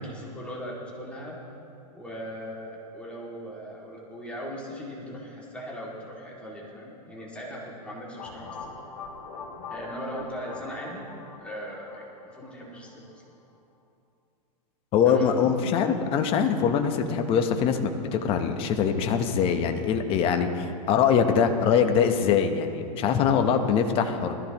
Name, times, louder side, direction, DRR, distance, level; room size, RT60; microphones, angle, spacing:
voice 1, 0.0-1.4 1.9-8.7 9.7-11.1 11.4-13.1 15.0-15.5, equal, 5° left, -6 dB, 2.3 m, -39 dB
sound 1, 8.2-12.9, left 4 dB, 60° left, 3.0 m, -42 dB
voice 2, 14.9-24.3, left 7 dB, 25° left, 6 dB, 0.9 m, -23 dB
20.0 x 14.0 x 3.0 m, 2.6 s
hypercardioid pair, 150°, 21 cm